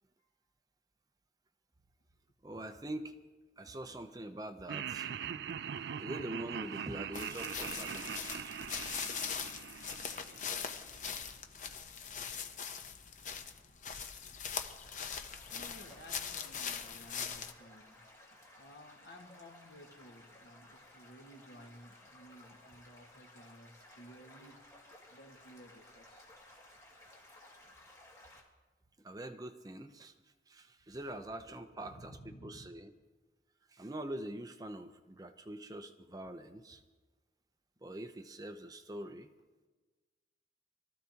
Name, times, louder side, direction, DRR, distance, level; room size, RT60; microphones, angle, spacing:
voice 1, 2.4-3.2 3.6-5.3 5.8-8.5 29.0-30.1 30.5-32.9 33.7-36.8 37.8-39.3, right 1 dB, 20° right, 0.7 m, -44 dB
Laughter, 4.7-10.9, right 8 dB, 70° right, 0.4 m, -42 dB
sound 1, 7.1-17.5, left 7 dB, 45° left, 0.8 m, -41 dB
Stream / Gurgling / Trickle dribble, 14.6-28.4, left 1 dB, 20° left, 2.3 m, -58 dB
voice 2, 15.5-26.3 30.9-31.0 31.8-32.7, equal, 75° left, 1.9 m, -56 dB
23.5 x 14.0 x 2.9 m
head